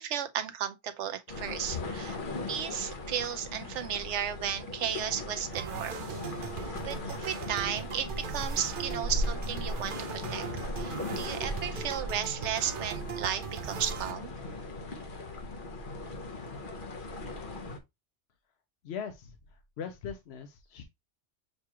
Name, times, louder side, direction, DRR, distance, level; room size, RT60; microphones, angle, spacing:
voice 1, 0.0-2.2 2.5-6.0 6.8-10.5 10.8-14.3, right 9 dB, 80° right, 1.0 m, -34 dB
sound 1, 1.3-17.8, left 2 dB, 50° left, 1.0 m, -38 dB
sound 2, 5.5-14.1, right 7 dB, 55° right, 0.7 m, -40 dB
voice 2, 18.8-20.8, left 7 dB, 70° left, 0.9 m, -40 dB
6.5 x 2.4 x 2.8 m
omnidirectional pair, 1.2 m